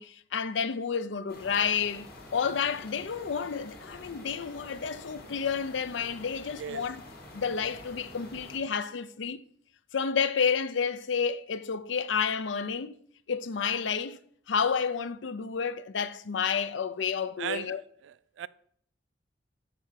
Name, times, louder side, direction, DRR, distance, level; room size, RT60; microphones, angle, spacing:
voice 1, 0.0-7.0 7.3-9.4 9.9-12.9 13.3-14.2 14.5-17.8, left 6 dB, 75° left, 0.5 m, -30 dB
sound 1, 1.3-8.6, left 1 dB, 55° left, 2.0 m, -48 dB
voice 2, 17.4-17.8 18.0-18.5, right 9 dB, 75° right, 0.3 m, -37 dB
6.9 x 5.8 x 6.2 m
head